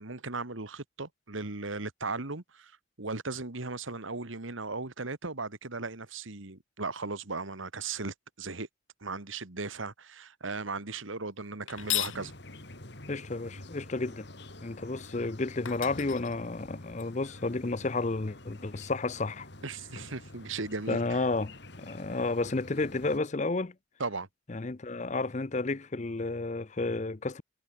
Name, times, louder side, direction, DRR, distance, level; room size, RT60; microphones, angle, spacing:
voice 1, 0.0-8.7 9.0-12.3 19.6-21.2 24.0-24.3, right 3 dB, 75° right, 1.9 m, -37 dB
sound 1, 11.7-12.2 15.2-15.3 15.7-17.0, left 14 dB, 75° left, 2.9 m, -35 dB
sound 2, 11.7-23.2, left 1 dB, 55° left, 3.3 m, -47 dB
voice 2, 13.1-14.3 14.6-19.5 20.9-23.7 24.5-27.4, left 3 dB, 35° left, 0.6 m, -31 dB
head